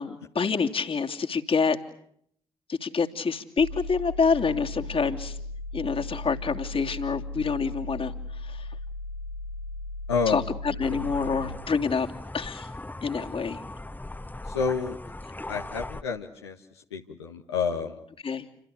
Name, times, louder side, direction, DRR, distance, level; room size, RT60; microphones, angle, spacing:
voice 1, 0.0-1.8 2.7-5.4 5.7-8.7 10.3-12.7 13.0-13.6 18.2-18.4, left 5 dB, 40° left, 5 dB, 2.9 m, -27 dB
sound 1, 3.6-11.6, left 2 dB, 75° right, 2.0 m, -37 dB
voice 2, 10.1-10.5 14.5-15.0 15.5-16.6 16.9-18.0, left 5 dB, 85° left, 1 dB, 1.5 m, -29 dB
sound 2, 10.8-16.0, left 2 dB, 15° left, 1.7 m, -39 dB
29.5 x 25.0 x 6.8 m, 0.67 s
figure-of-eight pair, 40°, 14 cm